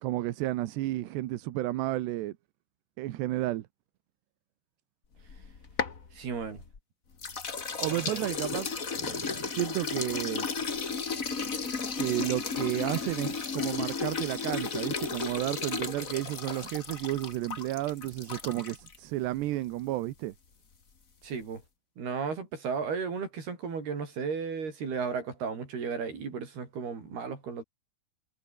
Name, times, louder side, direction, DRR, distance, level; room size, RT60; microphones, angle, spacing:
voice 1, 0.0-2.3 3.0-3.7 7.8-10.5 12.0-20.3, right 16 dB, 80° right, 3.2 m, -32 dB
sound 1, 5.2-6.8 7.2-19.0, left 5 dB, 40° left, 1.1 m, -34 dB
voice 2, 6.2-6.6 7.9-8.2 21.2-21.6 22.0-27.6, right 5 dB, 60° right, 7.4 m, -34 dB
omnidirectional pair, 5.0 m